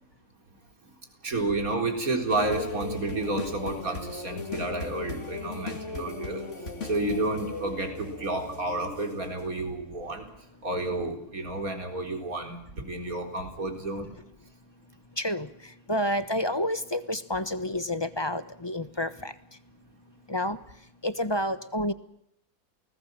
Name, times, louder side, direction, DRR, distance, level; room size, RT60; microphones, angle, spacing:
voice 1, 1.2-6.4 6.8-10.2 10.6-14.1, right 2 dB, 65° right, 5 dB, 4.5 m, -31 dB
sound 1, 2.3-10.3 10.7-10.9, left 3 dB, 50° left, 2.7 m, -37 dB
voice 2, 15.2-19.3 20.3-20.6 21.0-21.9, left 1 dB, 20° left, 12 dB, 1.0 m, -29 dB
29.0 x 19.5 x 7.6 m, 0.75 s
omnidirectional pair, 1.6 m